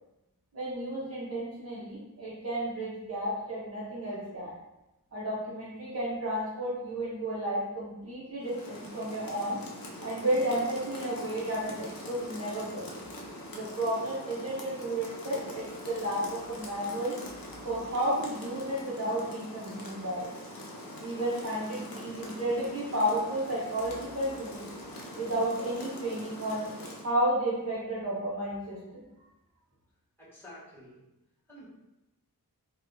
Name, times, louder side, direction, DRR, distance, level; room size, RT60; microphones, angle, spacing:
voice 1, 0.5-4.5 5.1-9.6 10.0-12.8 13.5-17.2 17.6-20.3 21.0-24.6 25.1-26.7 27.0-29.0, right 1 dB, 40° right, -9 dB, 0.9 m, -32 dB
Rain, 8.4-27.1, left 1 dB, 70° left, 0.7 m, -43 dB
voice 2, 30.2-31.0 31.5-31.7, equal, 5° left, -9 dB, 1.4 m, -49 dB
2.6 x 2.4 x 3.7 m, 0.95 s
wide cardioid pair, 90°, 36 cm